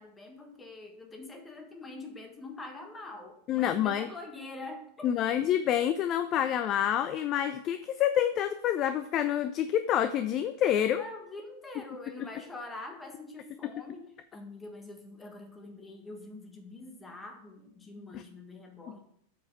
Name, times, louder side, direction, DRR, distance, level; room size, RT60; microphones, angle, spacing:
voice 1, 0.0-5.1 11.0-19.0, left 2 dB, 15° left, 4 dB, 1.5 m, -45 dB
voice 2, 3.5-4.1 5.0-11.0 18.1-18.2, left 10 dB, 35° left, 11 dB, 0.4 m, -27 dB
7.9 x 4.9 x 5.7 m, 0.67 s
figure-of-eight pair, 90°, 0 cm